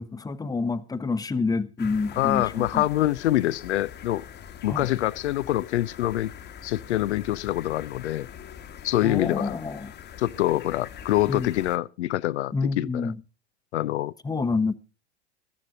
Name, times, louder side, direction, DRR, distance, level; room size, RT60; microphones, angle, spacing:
voice 1, 0.0-2.8 4.7-4.9 9.0-9.9 11.3-11.5 12.5-13.2 14.2-14.7, left 4 dB, 10° left, 1.0 m, -28 dB
sound 1, 1.8-11.8, left 8 dB, 30° left, 1.3 m, -43 dB
voice 2, 2.2-4.2 4.6-6.3 6.6-8.3 8.8-9.6 10.2-13.1 13.7-14.1, left 15 dB, 75° left, 0.6 m, -25 dB
14.5 x 13.0 x 4.0 m
hypercardioid pair, 90°, 34 cm